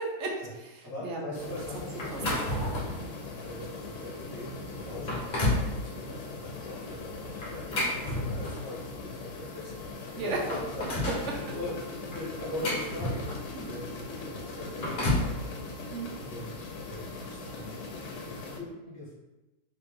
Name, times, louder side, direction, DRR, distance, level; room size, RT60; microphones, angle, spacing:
voice 1, 0.0-2.5 2.8-3.2 10.2-10.4 13.5-13.7 15.9-16.1, right 4 dB, 65° right, -1 dB, 0.7 m, -37 dB
voice 2, 0.8-2.4 3.4-15.6 15.9-19.1, left 1 dB, 10° left, -14 dB, 1.3 m, -41 dB
sound 1, 1.3-18.6, left 3 dB, 80° left, 1.1 m, -40 dB
sound 2, 2.0-3.0 3.6-3.8 4.4-4.5 4.9-5.7 7.4-8.7 9.8-9.9 10.2-11.3 12.1-13.5 14.5-15.3, left 1 dB, 40° left, 0.9 m, -30 dB
2.9 x 2.9 x 3.6 m, 1.1 s
omnidirectional pair, 1.7 m